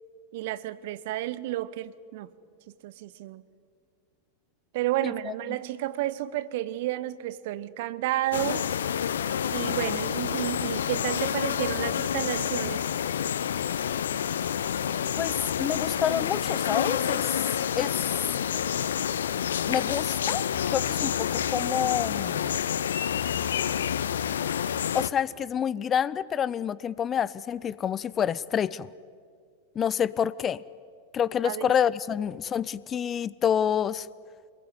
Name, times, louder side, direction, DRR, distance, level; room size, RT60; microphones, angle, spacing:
voice 1, 0.3-2.3 2.8-3.4 4.7-8.7 9.5-12.8 31.4-31.7, right 14 dB, 50° right, 18 dB, 1.0 m, -31 dB
sound 1, 8.3-25.1, left 9 dB, 65° left, 0.7 m, -28 dB
voice 2, 15.2-17.2 17.8-17.9 19.7-22.6 24.9-28.9 29.8-30.6 31.1-34.1, left 8 dB, 25° left, 20 dB, 0.6 m, -28 dB
26.0 x 21.5 x 9.7 m, 2.2 s
figure-of-eight pair, 90°, 0 cm